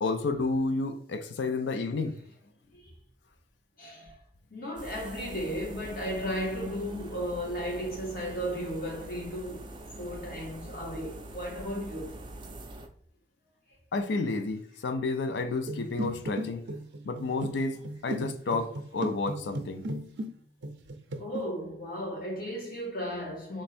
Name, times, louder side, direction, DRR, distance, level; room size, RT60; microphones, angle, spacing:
voice 1, 0.0-2.1 13.9-16.6 17.1-17.8 18.0-19.8, left 3 dB, 80° left, 0.5 m, -30 dB
voice 2, 3.8-4.2 4.5-9.6 10.0-12.1 21.2-23.6, equal, 55° left, 1.8 m, -35 dB
sound 1, 4.8-12.9, right 1 dB, 25° right, 0.5 m, -44 dB
sound 2, 15.6-20.3 20.6-21.4, equal, 75° right, 0.6 m, -37 dB
3.5 x 3.2 x 4.3 m
head